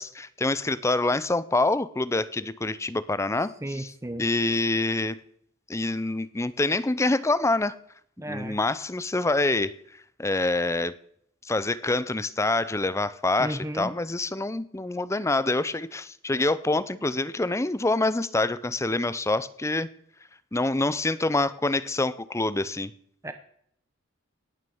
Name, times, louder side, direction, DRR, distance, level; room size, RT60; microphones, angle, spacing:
voice 1, 0.0-3.9 4.2-5.2 5.7-7.7 8.3-9.7 10.2-11.0 11.4-19.9 20.5-22.9, left 2 dB, 15° left, 17 dB, 0.5 m, -26 dB
voice 2, 3.6-4.2 8.2-8.6 13.4-13.9 23.2-23.3, right 1 dB, 15° right, 8 dB, 0.8 m, -34 dB
18.0 x 6.5 x 7.1 m, 0.66 s
head